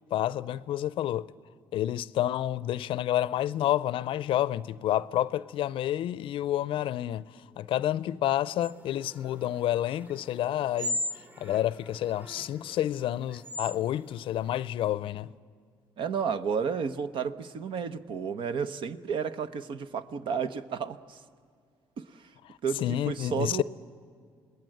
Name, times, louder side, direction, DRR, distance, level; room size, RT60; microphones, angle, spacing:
voice 1, 0.1-1.3 1.7-7.3 7.6-11.0 11.4-15.3 22.8-23.6, left 12 dB, 70° left, 0.5 m, -29 dB
sound 1, 8.6-14.6, left 1 dB, 20° right, 1.3 m, -39 dB
voice 2, 16.0-21.2 22.0-22.3 22.6-23.6, right 6 dB, 60° right, 1.0 m, -32 dB
27.5 x 20.0 x 7.8 m
supercardioid pair, 60°, 9 cm